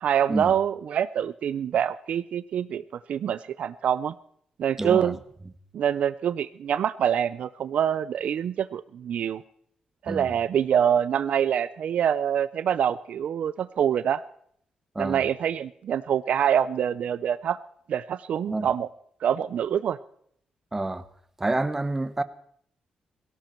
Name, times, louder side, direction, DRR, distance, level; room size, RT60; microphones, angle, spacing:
voice 1, 0.0-2.8 3.1-4.1 4.6-5.2 5.7-9.4 10.0-14.2 15.0-17.6 17.9-18.9 19.2-20.0, right 9 dB, 70° right, 0.6 m, -25 dB
voice 2, 4.8-5.1 10.1-10.4 14.9-15.2 18.5-18.7 20.7-21.0 21.4-22.2, right 2 dB, 15° right, 1.1 m, -28 dB
17.5 x 17.0 x 4.5 m
cardioid pair, 110°, 2 cm